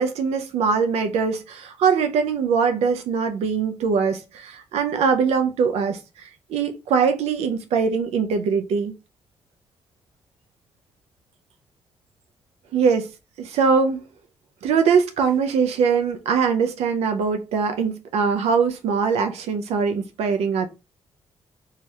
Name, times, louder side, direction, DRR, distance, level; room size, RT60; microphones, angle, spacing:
voice 1, 0.0-8.9 12.7-13.1 13.4-14.0 14.6-20.7, right 6 dB, 90° right, 0.4 m, -22 dB
2.7 x 2.3 x 3.1 m
cardioid pair, 85°, 10 cm